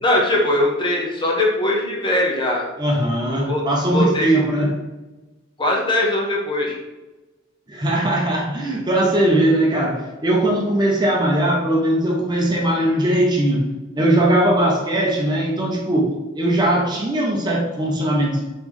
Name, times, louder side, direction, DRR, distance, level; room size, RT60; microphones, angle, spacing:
voice 1, 0.0-2.7 3.2-3.6 3.9-4.5 5.6-6.8, left 1 dB, 25° left, -2 dB, 0.7 m, -21 dB
voice 2, 2.8-4.7 7.7-13.7 13.9-18.5, right 1 dB, 20° right, -1 dB, 0.6 m, -19 dB
3.4 x 3.0 x 3.5 m, 1.1 s
head